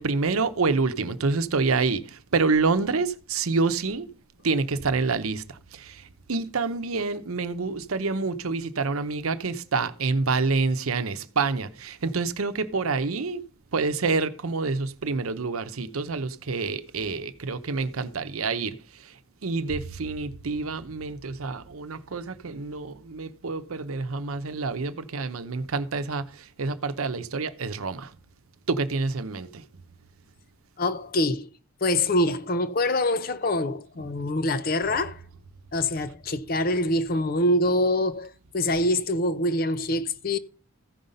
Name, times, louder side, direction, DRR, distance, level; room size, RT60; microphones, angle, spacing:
voice 1, 0.0-4.1 4.4-13.4 13.7-28.2 28.7-29.6, right 4 dB, 85° right, 0.8 m, -27 dB
voice 2, 30.8-31.5 31.8-35.2 35.7-40.4, left 1 dB, 45° left, 0.6 m, -25 dB
14.5 x 5.6 x 5.2 m
head